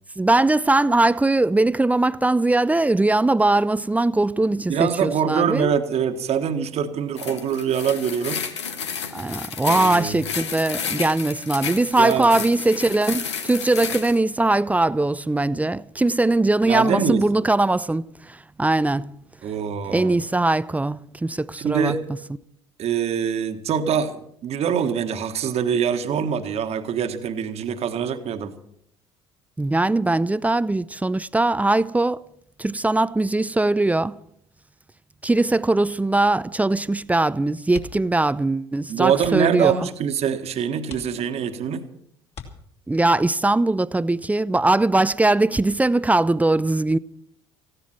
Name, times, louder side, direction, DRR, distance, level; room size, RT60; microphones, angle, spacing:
voice 1, 0.2-5.7 9.1-19.1 19.9-21.9 29.6-32.2 32.6-34.2 35.2-39.7 42.9-47.0, right 2 dB, 10° right, 0.5 m, -21 dB
voice 2, 4.7-8.4 9.7-10.2 11.9-12.3 16.6-17.2 19.4-20.2 21.6-22.0 22.8-28.5 38.9-41.9, right 7 dB, 45° right, 1.5 m, -24 dB
sound 1, 7.2-14.2, left 6 dB, 80° left, 1.1 m, -31 dB
sound 2, 37.7-38.2 38.5-38.7 39.1-39.6 40.2-40.3 40.8-41.6 42.3-43.1 44.6-45.0 45.3-45.4, left 5 dB, 50° left, 3.2 m, -42 dB
18.0 x 15.5 x 4.4 m
figure-of-eight pair, 60°, 14 cm